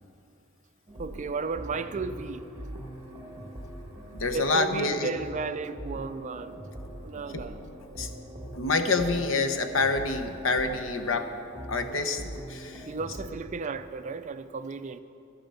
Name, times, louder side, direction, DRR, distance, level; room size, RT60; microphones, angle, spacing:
sound 1, 0.9-13.3, right 1 dB, 20° right, 1.6 m, -42 dB
voice 1, 1.0-2.4 4.3-6.6 7.0-7.6 12.2-12.3 12.9-15.0, right 4 dB, 35° right, 0.4 m, -34 dB
voice 2, 4.2-5.1 7.3-7.5 8.0-8.1 8.5-11.3 11.7-12.2 12.5-12.9, left 3 dB, 80° left, 0.9 m, -27 dB
13.0 x 10.5 x 5.5 m
head